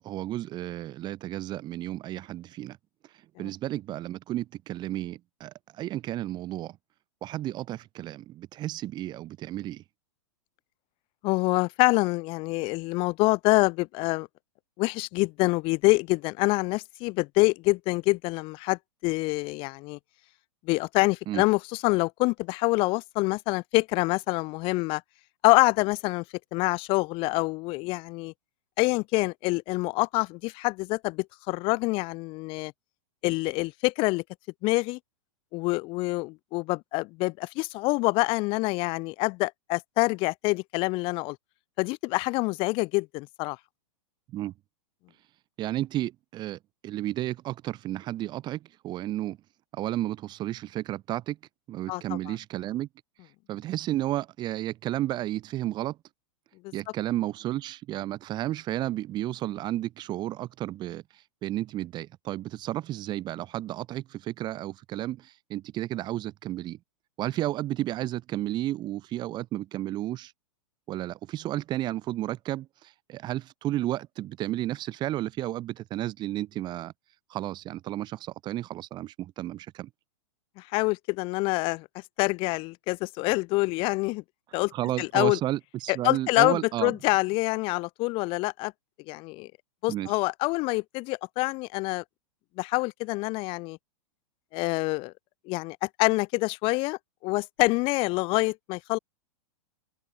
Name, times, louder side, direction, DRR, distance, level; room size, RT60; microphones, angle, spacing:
voice 1, 0.0-2.8 3.4-6.8 7.2-9.8 21.3-21.4 44.3-44.5 45.6-49.4 49.7-51.4 51.7-52.9 53.5-56.0 56.7-61.0 61.4-66.8 67.2-70.3 70.9-76.9 77.3-79.9 84.7-87.0 89.9-90.1, right 14 dB, 25° right, 1.5 m, -32 dB
voice 2, 11.2-14.3 14.8-20.0 20.7-25.0 25.4-26.2 26.5-28.3 28.8-32.7 33.2-34.2 34.6-35.0 35.5-41.4 41.8-43.6 51.9-52.2 56.6-56.7 80.6-81.9 82.2-84.2 84.5-84.7 85.0-85.4 85.9-88.7 89.1-89.5 89.8-92.0 92.6-93.8 94.5-95.1 95.5-99.0, left 24 dB, 35° left, 0.7 m, -26 dB
hypercardioid pair, 145°, 17 cm